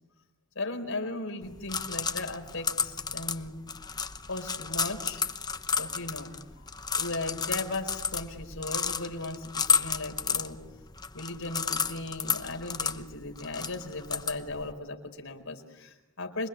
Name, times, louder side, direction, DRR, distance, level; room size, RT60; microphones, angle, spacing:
voice 1, 0.5-3.5 4.3-5.2 5.8-6.7 6.9-10.6 11.1-16.5, left 2 dB, 80° left, 4 dB, 4.7 m, -37 dB
sound 1, 1.4-14.7, left 6 dB, 20° left, 0.9 m, -32 dB
27.5 x 24.0 x 8.4 m, 1.0 s
head